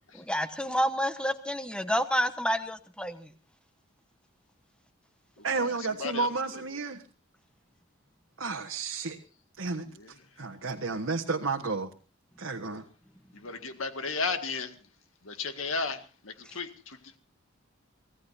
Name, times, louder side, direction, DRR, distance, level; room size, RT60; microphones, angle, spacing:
voice 1, 0.1-3.3, equal, 5° left, 9 dB, 1.1 m, -29 dB
voice 2, 5.4-7.0 8.4-9.2 9.6-9.8 10.4-11.9 12.4-12.8, right 4 dB, 75° right, 2 dB, 1.5 m, -31 dB
voice 3, 13.4-14.7 15.3-16.0 16.2-17.0, left 4 dB, 80° left, 7 dB, 2.0 m, -33 dB
25.0 x 18.0 x 2.8 m, 0.35 s
head